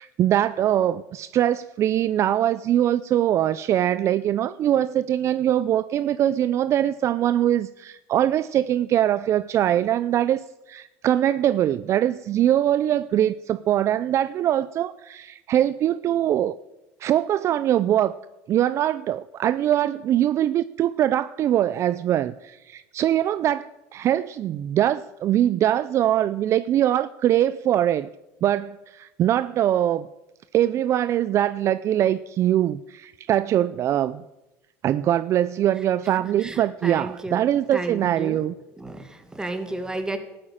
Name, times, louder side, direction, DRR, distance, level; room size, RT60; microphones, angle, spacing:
voice 1, 0.0-10.4 10.7-16.5 17.0-18.1 18.5-28.1 28.4-30.1 30.5-34.2 34.8-38.5, right 11 dB, 45° right, 0.4 m, -22 dB
voice 2, 36.4-37.4 37.7-38.4 38.8-40.2, right 2 dB, 10° right, 2.1 m, -32 dB
14.0 x 8.8 x 8.8 m
supercardioid pair, 110°, 7 cm